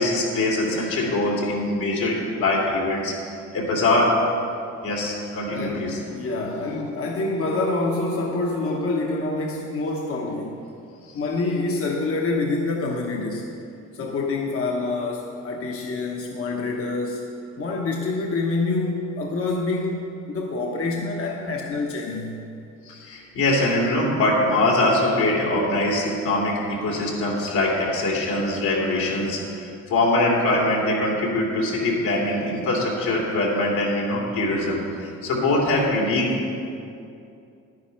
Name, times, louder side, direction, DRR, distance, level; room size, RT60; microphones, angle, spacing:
voice 1, 0.0-3.2 3.5-4.3 4.8-6.0 22.9-36.4, left 2 dB, 85° left, -4 dB, 2.9 m, -23 dB
voice 2, 5.5-10.6 11.1-13.5 13.9-17.3 17.6-22.4, left 3 dB, 50° left, -1 dB, 1.1 m, -26 dB
11.0 x 9.8 x 4.5 m, 2.5 s
cardioid pair, 90°, 30 cm